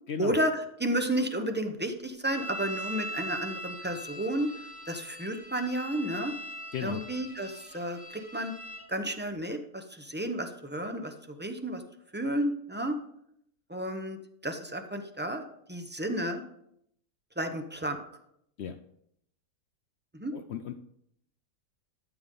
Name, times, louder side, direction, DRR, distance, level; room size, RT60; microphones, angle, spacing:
voice 1, 0.2-4.5 4.9-6.3 6.8-8.5 8.9-11.8 12.1-13.0 13.7-14.2 14.4-15.4 15.7-16.4 17.4-18.0 20.1-20.3, right 1 dB, 10° right, 6 dB, 0.5 m, -32 dB
sound 1, 2.3-8.9, equal, 45° right, 4.8 m, -41 dB
voice 2, 20.3-20.8, left 8 dB, 65° left, 9 dB, 0.6 m, -36 dB
13.5 x 7.0 x 3.8 m, 0.74 s
omnidirectional pair, 1.6 m